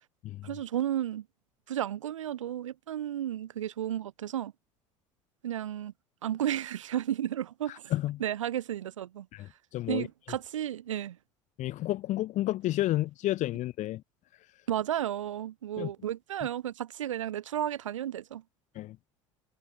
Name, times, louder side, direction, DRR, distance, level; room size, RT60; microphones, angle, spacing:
voice 1, 0.4-1.2 1.7-4.5 5.4-5.9 6.2-7.8 8.2-9.3 9.9-11.2 14.7-18.4, right 11 dB, 75° right, 3.1 m, -33 dB
voice 2, 7.7-8.2 9.3-10.1 11.6-14.0 15.8-15.9 18.7-19.0, left 15 dB, 50° left, 2.6 m, -31 dB
figure-of-eight pair, 65°, 16 cm